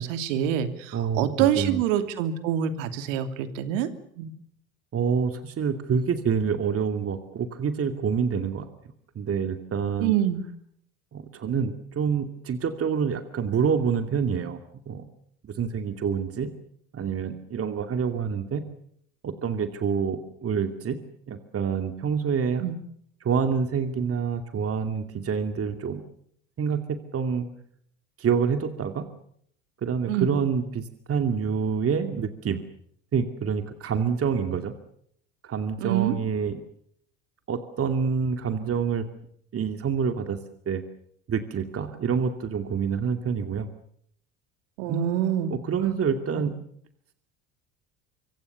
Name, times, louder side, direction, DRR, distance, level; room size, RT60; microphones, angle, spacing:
voice 1, 0.0-3.9 4.2-4.3 10.0-10.4 22.6-22.7 30.1-30.3 35.8-36.1 44.8-45.5 46.4-46.5, right 10 dB, 70° right, 9 dB, 2.9 m, -26 dB
voice 2, 0.9-1.8 4.9-8.7 9.2-10.1 11.1-14.6 14.9-15.1 15.4-16.5 16.9-18.6 19.2-21.0 21.3-22.6 23.2-26.0 26.6-27.5 28.2-29.1 29.8-32.6 33.1-34.7 35.4-36.6 37.5-39.1 39.5-40.4 40.7-40.8 41.3-43.7 44.9-45.2 45.5-46.5, right 6 dB, 35° right, 7 dB, 2.5 m, -27 dB
26.0 x 24.5 x 6.9 m, 0.68 s
hypercardioid pair, 75°, 40 cm